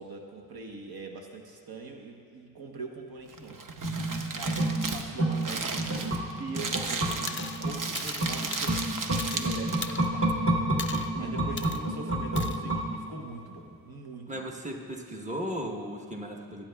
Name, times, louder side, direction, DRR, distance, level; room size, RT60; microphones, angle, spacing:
voice 1, 0.0-3.6 4.3-4.6 4.9-10.4 11.2-14.4, right 3 dB, 80° right, 1 dB, 1.0 m, -42 dB
Crumpling crinkling, 3.3-10.0, right 4 dB, 60° right, 0.8 m, -35 dB
sound 1, 3.8-13.3 13.6-13.7, right 1 dB, 35° right, 1.4 m, -30 dB
sound 2, 7.3-7.6 7.9-9.5 9.8-10.3 10.8-11.1 11.6-11.8 12.4-12.6, left 5 dB, 35° left, 0.4 m, -39 dB
voice 2, 14.3-16.7, equal, 20° right, 1 dB, 1.1 m, -36 dB
20.5 x 8.7 x 2.3 m, 2.5 s
wide cardioid pair, 85°, 36 cm